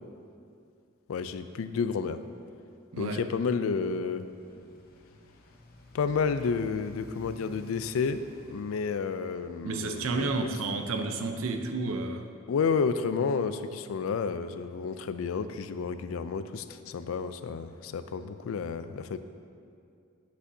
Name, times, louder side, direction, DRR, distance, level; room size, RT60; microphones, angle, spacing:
voice 1, 1.1-2.2 3.0-4.2 5.9-10.3 12.5-19.2, left 5 dB, 80° left, 11 dB, 0.4 m, -31 dB
Motorcycle, 4.1-10.0, left 1 dB, 45° left, 0.8 m, -52 dB
voice 2, 9.6-12.3, right 3 dB, 80° right, 6 dB, 0.6 m, -31 dB
8.5 x 8.1 x 2.7 m, 2.4 s
head